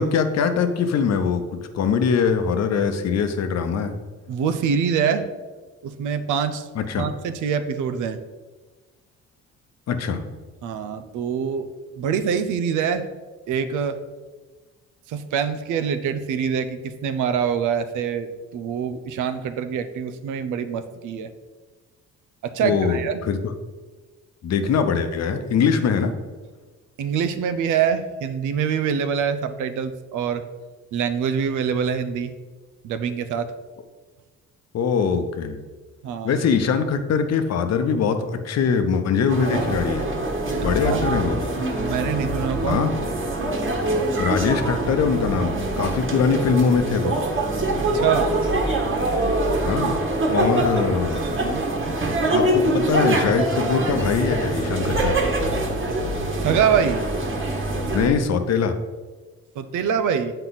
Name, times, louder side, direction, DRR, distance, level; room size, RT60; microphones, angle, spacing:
voice 1, 0.0-4.0 6.7-7.1 9.9-10.2 22.6-23.4 24.4-26.1 34.7-35.6 36.2-40.1 40.6-41.5 42.6-42.9 44.2-47.2 49.6-50.0 50.3-51.2 52.3-55.2 57.9-58.8, left 6 dB, 60° left, 8 dB, 0.8 m, -22 dB
voice 2, 4.3-5.3 5.8-6.7 7.0-8.2 10.6-11.7 12.0-13.1 13.5-14.0 15.1-21.3 22.4-23.2 27.0-30.4 30.9-32.3 32.8-33.5 36.0-36.4 40.6-41.0 41.8-42.8 47.9-48.4 50.3-50.7 51.3-51.6 56.4-57.0 59.6-60.3, right 7 dB, 80° right, 10 dB, 0.7 m, -25 dB
sound 1, 39.3-58.1, right 2 dB, 40° right, 1.5 m, -24 dB
7.9 x 4.4 x 4.0 m, 1.3 s
cardioid pair, 90°, 30 cm